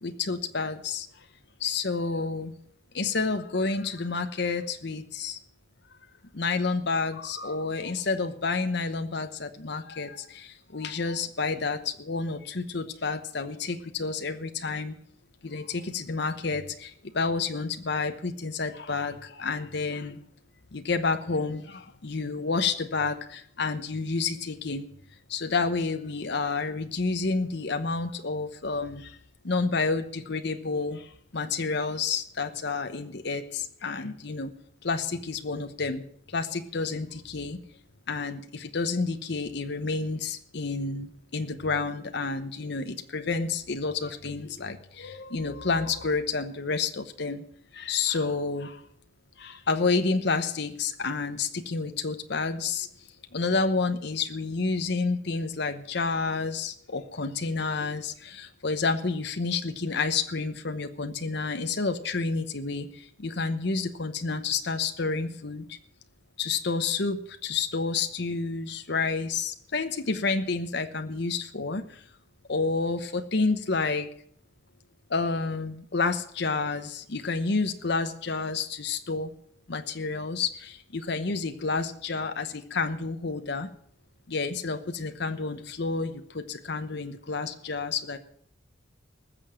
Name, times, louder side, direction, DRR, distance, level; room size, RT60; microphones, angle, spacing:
voice 1, 0.0-1.1 1.6-2.5 2.9-5.4 6.3-14.9 15.4-20.2 20.7-24.9 25.3-29.1 29.4-31.0 31.3-34.5 34.8-36.0 36.3-37.6 38.1-47.4 47.7-48.8 49.4-52.9 53.3-62.9 63.2-65.8 66.4-71.8 72.5-74.1 75.1-79.3 79.7-83.7 84.3-88.2, left 4 dB, 60° left, 8 dB, 0.9 m, -29 dB
19.5 x 6.9 x 7.6 m, 0.64 s
head